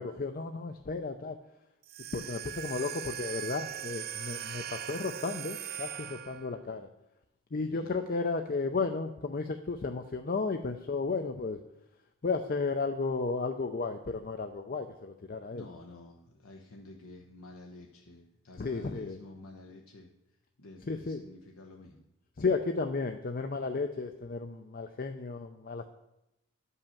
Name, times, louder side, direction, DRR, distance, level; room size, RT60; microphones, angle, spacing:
voice 1, 0.0-1.4 2.1-6.9 7.5-11.6 12.2-15.6 18.6-19.2 20.9-21.2 22.4-25.8, left 4 dB, 45° left, 7 dB, 0.5 m, -33 dB
sound 1, 1.8-6.6, right 11 dB, 45° right, 0.4 m, -40 dB
voice 2, 15.5-22.1, left 2 dB, 80° left, 0 dB, 1.0 m, -50 dB
11.5 x 5.6 x 7.1 m, 0.86 s
head